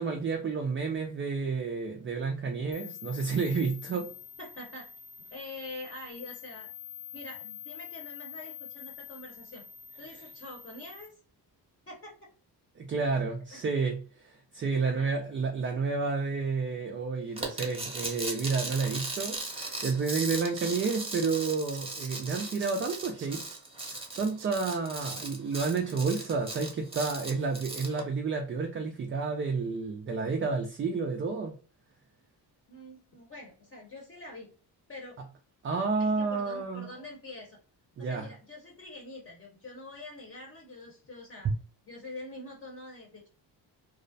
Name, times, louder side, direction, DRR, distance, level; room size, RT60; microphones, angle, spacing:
voice 1, 0.0-4.1 12.8-23.4 23.9-31.5 35.6-36.9 38.0-38.3, right 4 dB, 30° right, 0.4 m, -30 dB
sound 1, 2.7-11.1, left 9 dB, 65° left, 0.6 m, -46 dB
voice 2, 4.4-4.9 5.3-6.7 7.1-9.6 10.0-11.1 11.9-12.1 13.5-13.6 14.8-15.3 32.7-34.5 34.9-35.2 36.0-37.6 38.0-41.5 41.9-43.3, left 2 dB, 30° left, 0.8 m, -45 dB
sound 2, 17.4-28.0, right 2 dB, 15° right, 0.8 m, -38 dB
Tools, 20.0-21.2 21.4-25.1 25.5-25.6, right 7 dB, 75° right, 0.7 m, -48 dB
2.4 x 2.0 x 2.5 m
cardioid pair, 115°, 41 cm